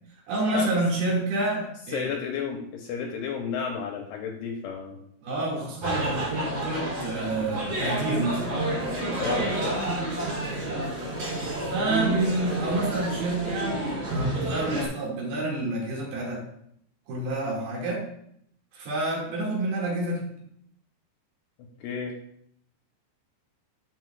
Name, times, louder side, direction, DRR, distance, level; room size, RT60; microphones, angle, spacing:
voice 1, 0.3-2.1 5.2-8.6 11.7-16.4 17.1-18.1 18.7-20.2, right 2 dB, 60° right, -3 dB, 3.7 m, -28 dB
voice 2, 1.9-5.0 9.2-9.8 21.8-22.2, left 6 dB, 80° left, 2 dB, 2.5 m, -32 dB
sound 1, 5.8-14.9, right 1 dB, 45° right, 4.3 m, -30 dB
11.0 x 8.0 x 2.3 m, 0.71 s
omnidirectional pair, 5.3 m